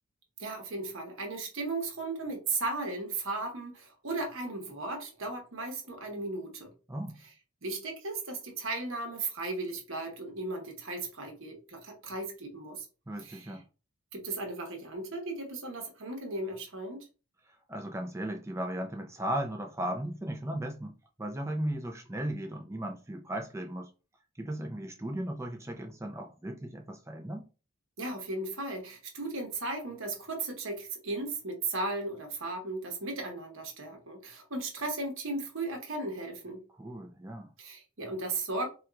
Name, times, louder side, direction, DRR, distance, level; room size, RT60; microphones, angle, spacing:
voice 1, 0.4-6.7 7.6-12.9 13.2-13.5 14.1-17.1 28.0-36.6 37.6-38.7, right 2 dB, 65° right, 1.0 m, -36 dB
voice 2, 13.1-13.6 17.5-23.9 24.4-27.5 36.8-37.5, right 1 dB, 15° right, 0.4 m, -36 dB
4.2 x 2.3 x 2.3 m
head